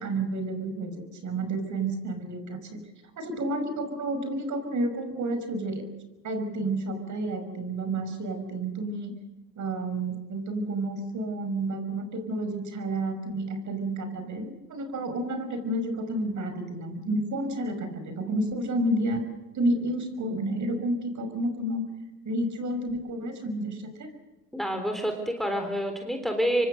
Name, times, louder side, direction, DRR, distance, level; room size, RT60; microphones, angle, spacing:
voice 1, 0.0-2.8 3.2-5.9 6.2-9.2 9.6-19.2 19.5-21.8 22.3-24.1, right 1 dB, 35° right, 9 dB, 5.6 m, -30 dB
voice 2, 24.5-26.7, equal, ahead, 5 dB, 3.6 m, -28 dB
26.0 x 24.0 x 6.6 m, 1.0 s
hypercardioid pair, 95°, 49 cm